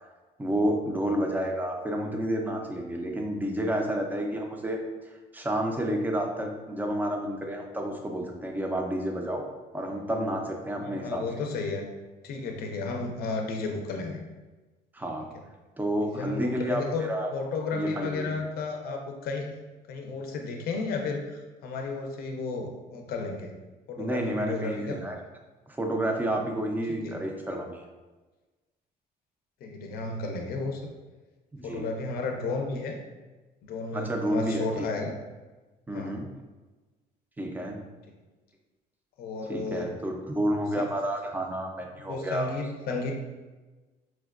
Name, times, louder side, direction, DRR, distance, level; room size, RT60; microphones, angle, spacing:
voice 1, 0.4-4.8 5.3-9.5 9.7-11.2 14.9-15.3 15.8-16.8 17.1-17.3 17.7-18.3 24.0-25.2 25.7-27.9 31.5-31.9 33.9-34.9 35.9-36.3 37.4-37.8 39.5-42.5, right 1 dB, 10° right, 2 dB, 0.4 m, -30 dB
voice 2, 10.8-11.9 12.2-14.2 16.0-19.6 19.9-23.5 23.9-25.0 26.9-27.3 29.6-30.8 31.6-33.0 33.6-35.2 35.9-36.2 38.1-38.2 39.2-39.9 40.8-40.9 42.1-43.1, left 3 dB, 65° left, 3 dB, 0.5 m, -33 dB
4.3 x 2.2 x 2.3 m, 1.2 s
cardioid pair, 110°, 17 cm